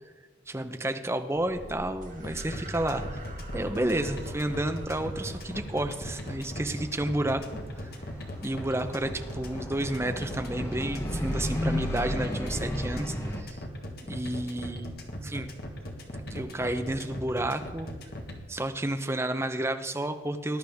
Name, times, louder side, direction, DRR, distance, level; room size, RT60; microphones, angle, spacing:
voice 1, 0.5-3.2 3.5-7.4 7.8-7.9 8.4-13.6 13.9-14.9 15.2-15.5 16.3-17.9 18.5-20.6, right 1 dB, 15° right, 7 dB, 0.7 m, -31 dB
sound 1, 1.4-13.4, left 1 dB, 15° left, 1.2 m, -37 dB
sound 2, 2.0-10.6, right 2 dB, 45° right, 1.5 m, -48 dB
sound 3, 2.2-18.4, equal, 55° left, 1.6 m, -39 dB
19.5 x 11.0 x 3.6 m, 1.3 s
head